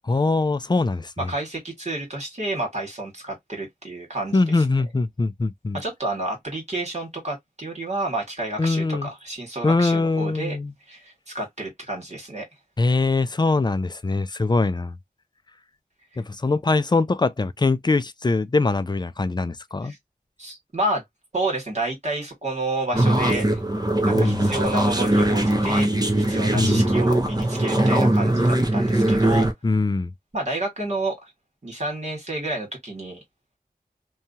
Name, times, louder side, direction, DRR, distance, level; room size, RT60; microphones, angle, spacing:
voice 1, 0.0-1.3 4.3-5.8 8.6-9.1 9.6-10.7 12.8-15.0 16.2-19.9 24.1-24.5 26.6-26.9 29.6-30.1, left 3 dB, 30° left, 0.4 m, -22 dB
voice 2, 1.2-4.4 5.7-10.6 10.9-12.5 19.8-20.0 20.4-21.0 21.3-23.6 24.0-25.9 26.3-29.5 30.3-31.3 31.6-33.2, right 2 dB, 50° right, 1.7 m, -30 dB
sound 1, 22.9-29.5, right 1 dB, 25° right, 0.7 m, -20 dB
2.8 x 2.3 x 2.7 m
wide cardioid pair, 55°, 15 cm